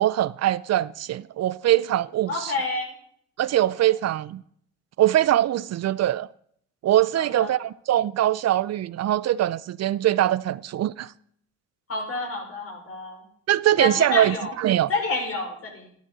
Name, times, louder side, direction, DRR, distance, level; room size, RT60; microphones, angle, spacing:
voice 1, 0.0-2.5 3.4-4.4 5.0-6.3 6.8-11.1 13.5-14.9, right 13 dB, 60° right, 0.5 m, -22 dB
voice 2, 2.3-2.9 3.6-3.7 7.2-7.6 11.9-13.2 13.8-14.5 14.9-15.9, left 3 dB, 50° left, 5.6 m, -29 dB
12.5 x 12.5 x 4.0 m
cardioid pair, 90°, 30 cm